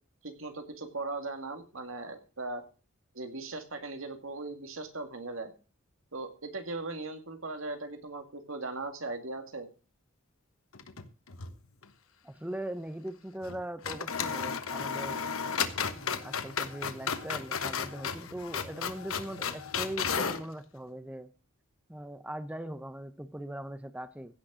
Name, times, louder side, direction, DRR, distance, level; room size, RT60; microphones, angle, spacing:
voice 1, 0.2-2.6 3.1-5.5 6.1-9.7, right 3 dB, 70° right, 6 dB, 2.1 m, -38 dB
sound 1, 10.7-11.6 11.8-11.9 13.4-13.6 13.8-20.5, left 6 dB, 85° left, 1.2 m, -34 dB
voice 2, 12.2-15.2 15.9-21.3 21.9-24.3, right 1 dB, 5° right, 11 dB, 0.7 m, -40 dB
16.0 x 6.3 x 6.2 m, 0.35 s
head